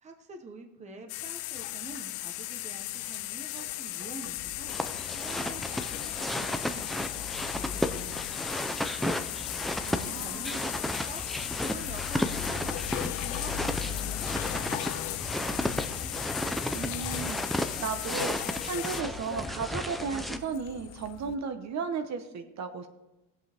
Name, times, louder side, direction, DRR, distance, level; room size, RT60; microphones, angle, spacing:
voice 1, 0.0-9.3 9.6-15.6, right 3 dB, 15° right, 5 dB, 0.9 m, -47 dB
sound 1, 1.1-19.0, left 17 dB, 80° left, 0.7 m, -36 dB
sound 2, 4.3-21.3, left 10 dB, 40° left, 0.7 m, -43 dB
sound 3, 4.7-20.4, equal, ahead, 0.4 m, -34 dB
voice 2, 9.8-10.6 16.7-22.9, right 5 dB, 40° right, 8 dB, 1.0 m, -35 dB
17.5 x 7.8 x 3.5 m, 1.0 s
cardioid pair, 130°, 41 cm